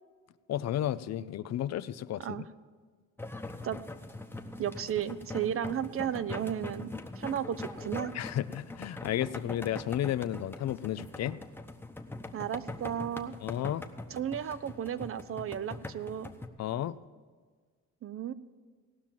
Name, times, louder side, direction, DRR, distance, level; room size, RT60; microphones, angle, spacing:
voice 1, 0.5-2.4 8.1-11.4 13.4-13.9 16.6-17.0, left 12 dB, 60° left, 15 dB, 0.5 m, -33 dB
sound 1, 3.2-16.5, left 2 dB, 5° left, 1.0 m, -42 dB
voice 2, 4.6-8.1 12.3-13.3 14.1-16.3 18.0-18.3, right 9 dB, 45° right, 15 dB, 0.6 m, -34 dB
17.5 x 6.0 x 7.4 m, 1.5 s
cardioid pair, 90°, 30 cm